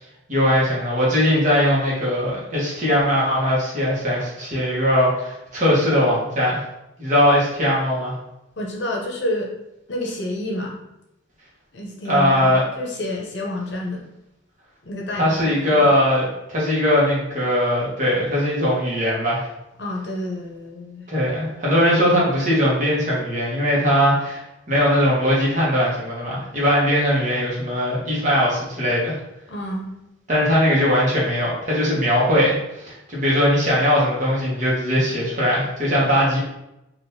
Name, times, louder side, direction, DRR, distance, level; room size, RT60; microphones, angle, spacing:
voice 1, 0.3-6.6 7.0-8.1 12.1-12.6 15.2-19.5 21.1-29.2 30.3-36.4, equal, 40° right, -5 dB, 1.1 m, -20 dB
voice 2, 8.6-9.5 9.9-10.8 11.7-14.0 14.8-15.9 19.8-21.1 29.5-29.9, left 1 dB, 60° left, -1 dB, 0.7 m, -29 dB
3.6 x 2.6 x 2.7 m, 0.88 s
head